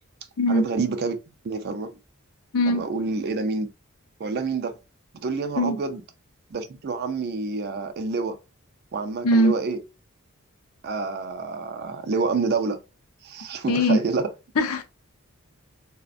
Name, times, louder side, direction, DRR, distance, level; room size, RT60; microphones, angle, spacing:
voice 1, 0.5-1.2 1.4-1.9 2.7-3.7 4.2-4.7 5.2-6.0 6.5-8.4 8.9-9.8 10.8-12.8 13.2-14.3, right 4 dB, 45° right, 0.4 m, -28 dB
voice 2, 2.5-2.9 5.6-5.8 9.2-9.6 13.7-14.0 14.6-14.8, equal, 80° left, 0.5 m, -20 dB
2.4 x 2.1 x 2.5 m
head